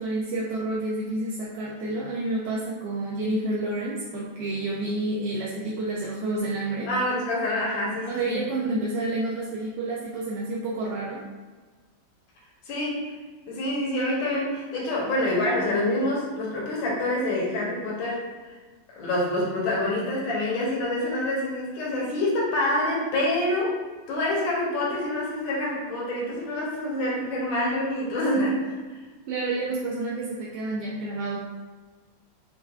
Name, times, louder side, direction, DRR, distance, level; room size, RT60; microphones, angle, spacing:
voice 1, 0.0-6.9 8.1-11.2 29.3-31.4, right 2 dB, 70° right, -5 dB, 1.0 m, -29 dB
voice 2, 6.9-8.4 12.7-13.2 13.5-18.2 18.9-23.8 24.1-28.8, left 1 dB, 75° left, -4 dB, 1.7 m, -26 dB
6.5 x 2.2 x 2.3 m, 1.3 s
omnidirectional pair, 2.2 m